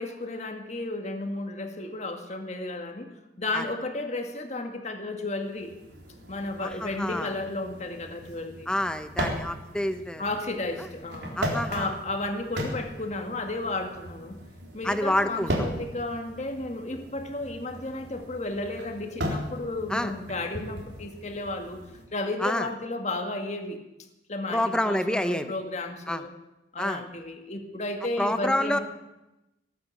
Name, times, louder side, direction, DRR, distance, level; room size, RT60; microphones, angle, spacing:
voice 1, 0.0-3.1 3.4-5.7 6.3-8.7 10.2-11.4 11.7-14.4 14.7-21.8 22.1-23.8 24.3-26.3 26.7-28.8, left 2 dB, 40° left, 5 dB, 1.8 m, -33 dB
sound 1, 5.5-22.0, equal, 75° right, 4.0 m, -37 dB
voice 2, 6.6-7.3 8.7-10.2 10.8-10.9 11.4-11.9 14.8-15.5 19.9-20.1 22.4-22.7 24.5-25.5 26.1-26.2 26.8-27.0 28.2-28.8, left 1 dB, 5° left, 9 dB, 0.9 m, -28 dB
18.5 x 9.4 x 8.3 m, 0.97 s
head